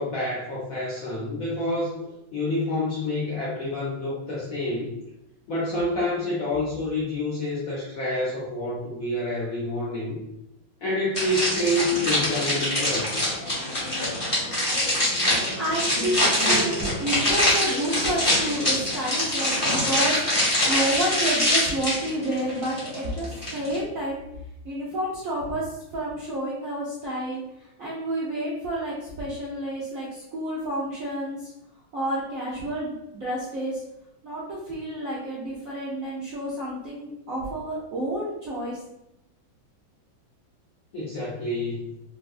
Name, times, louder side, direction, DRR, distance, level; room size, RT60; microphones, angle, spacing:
voice 1, 0.0-2.0 2.3-4.9 5.5-10.2 10.8-13.1 40.9-41.9, left 1 dB, 60° left, -7 dB, 0.9 m, -28 dB
sound 1, 11.1-23.8, left 1 dB, 25° left, 0.8 m, -24 dB
voice 2, 15.6-24.2 24.6-25.7 25.9-27.4 27.8-31.5 31.9-33.8 34.2-38.8, right 1 dB, 65° right, -7 dB, 0.8 m, -30 dB
4.1 x 2.2 x 2.4 m, 0.85 s
omnidirectional pair, 2.2 m